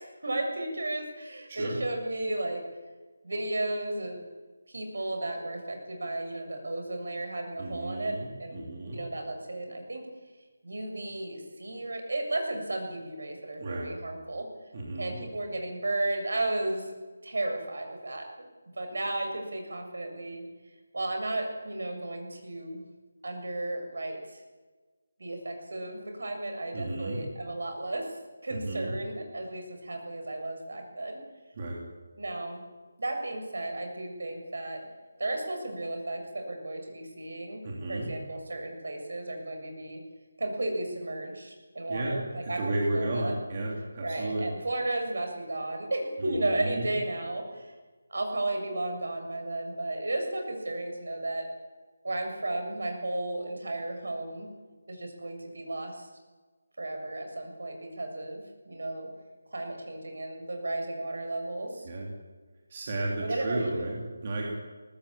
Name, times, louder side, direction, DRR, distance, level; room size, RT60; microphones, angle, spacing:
voice 1, 0.0-2.6 3.2-4.2 4.7-10.0 10.6-14.5 15.0-16.9 17.2-18.3 18.8-20.5 20.9-22.8 23.2-24.4 25.2-28.2 28.4-31.2 32.2-32.6 33.0-34.8 35.2-40.0 40.4-43.4 44.0-47.7 48.1-51.4 52.0-54.5 54.9-56.1 56.8-59.1 59.5-61.9 63.2-64.0, right 2 dB, 65° right, 4 dB, 7.3 m, -34 dB
voice 2, 1.5-1.8 7.6-9.0 13.6-13.9 14.7-15.2 26.7-27.2 28.5-29.0 31.5-31.8 37.6-38.1 41.9-44.5 46.2-46.9 61.8-62.1 62.7-64.5, right 2 dB, 25° right, -2 dB, 3.3 m, -33 dB
21.5 x 19.5 x 8.8 m, 1.3 s
figure-of-eight pair, 180°, 0 cm